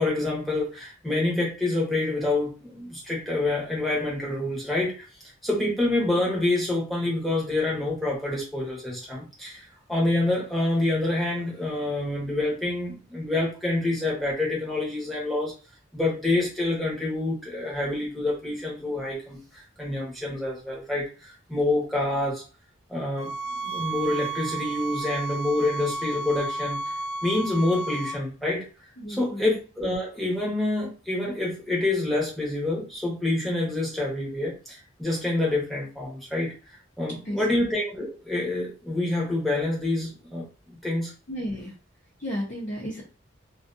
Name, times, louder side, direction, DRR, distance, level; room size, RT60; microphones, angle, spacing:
voice 1, 0.0-5.0 5.4-15.5 15.9-22.4 22.9-23.3 23.6-26.8 27.2-28.7 29.1-36.5 37.0-41.1, left 2 dB, ahead, -5 dB, 0.9 m, -27 dB
sound 1, 23.2-28.2, right 3 dB, 90° left, 0.4 m, -32 dB
voice 2, 29.0-29.6 37.2-37.7 41.3-41.7 42.2-43.0, equal, 45° left, -3 dB, 0.6 m, -33 dB
2.4 x 2.3 x 2.6 m, 0.34 s
head